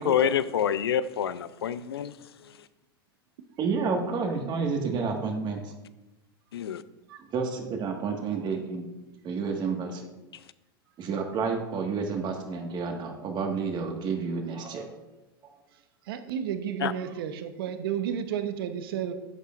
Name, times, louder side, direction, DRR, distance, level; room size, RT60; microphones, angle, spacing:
voice 1, 0.0-2.1 2.4-2.6 6.5-6.8 16.8-16.9, left 9 dB, 85° left, 16 dB, 0.5 m, -27 dB
voice 2, 3.6-5.7 7.3-8.9 9.2-10.1 11.0-14.9 15.4-15.5, right 5 dB, 35° right, 3 dB, 1.7 m, -30 dB
voice 3, 16.1-19.1, right 9 dB, 70° right, 9 dB, 1.0 m, -32 dB
11.0 x 8.3 x 2.6 m, 1.0 s
hypercardioid pair, 105°, 13 cm